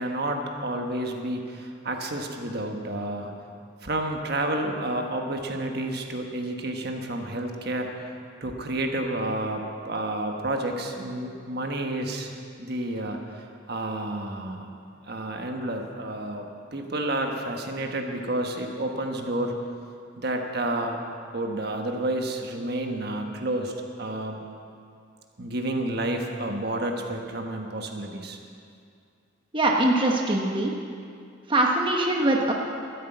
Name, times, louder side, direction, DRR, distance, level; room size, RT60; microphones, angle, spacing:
voice 1, 0.0-3.3 3.8-8.1 8.4-12.3 12.6-14.7 15.1-19.5 20.2-21.0 21.3-24.4 25.4-28.4, right 1 dB, 55° right, 3 dB, 1.3 m, -30 dB
voice 2, 29.5-30.7 31.5-32.5, right 1 dB, 25° right, 0 dB, 1.1 m, -22 dB
13.0 x 10.5 x 8.0 m, 2.4 s
head